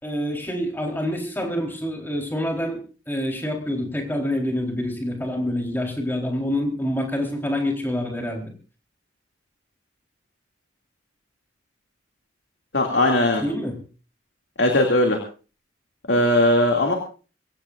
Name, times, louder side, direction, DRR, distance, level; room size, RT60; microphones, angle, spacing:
voice 1, 0.0-2.8 3.1-8.5 13.4-13.8, left 1 dB, 10° left, 2 dB, 4.1 m, -26 dB
voice 2, 12.7-13.4 14.6-15.2 16.1-16.9, left 1 dB, 70° left, 2 dB, 2.7 m, -19 dB
25.0 x 15.5 x 2.6 m, 0.36 s
head